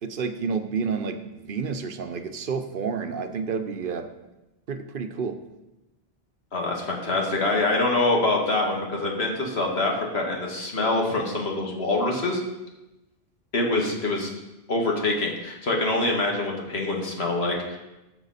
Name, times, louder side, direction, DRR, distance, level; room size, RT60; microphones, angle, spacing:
voice 1, 0.0-4.1 4.7-5.4, right 5 dB, 60° right, 8 dB, 0.9 m, -30 dB
voice 2, 6.5-12.4 13.5-14.3 14.7-17.8, left 2 dB, 75° left, 0 dB, 2.0 m, -25 dB
12.0 x 7.2 x 4.1 m, 0.99 s
omnidirectional pair, 1.1 m